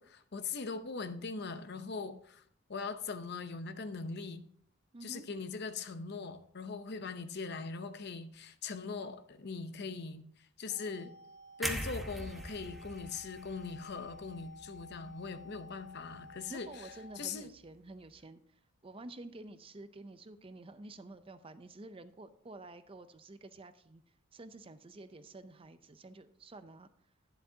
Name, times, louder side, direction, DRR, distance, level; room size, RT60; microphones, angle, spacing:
voice 1, 0.0-2.4 2.7-4.5 5.0-11.1 11.6-16.9 17.2-17.5, left 4 dB, 55° left, 0.7 m, -41 dB
voice 2, 4.9-5.3 16.5-18.4 18.8-24.0 24.3-26.9, right 2 dB, 25° right, 0.5 m, -50 dB
sound 1, 10.7-17.2, left 2 dB, 70° left, 2.1 m, -53 dB
sound 2, 11.6-15.6 16.0-16.2, equal, ahead, 0.9 m, -42 dB
11.5 x 10.0 x 2.8 m
head